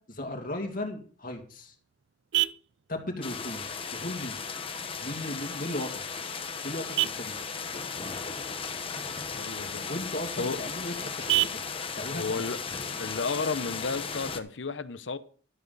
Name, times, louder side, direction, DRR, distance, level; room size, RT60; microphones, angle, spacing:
voice 1, 0.1-1.7 2.9-3.6 3.9-4.4 5.0-6.0 6.6-7.4 9.9-11.5 11.9-12.4, left 1 dB, 50° left, 2.4 m, -36 dB
Vehicle horn car horn honking, 1.1-14.1, right 16 dB, 70° right, 0.5 m, -37 dB
sound 1, 3.2-14.4, left 5 dB, 30° left, 1.0 m, -36 dB
voice 2, 9.3-9.9 10.4-10.6 12.1-12.6 13.0-15.2, left 4 dB, 75° left, 0.8 m, -33 dB
12.0 x 10.0 x 4.0 m
head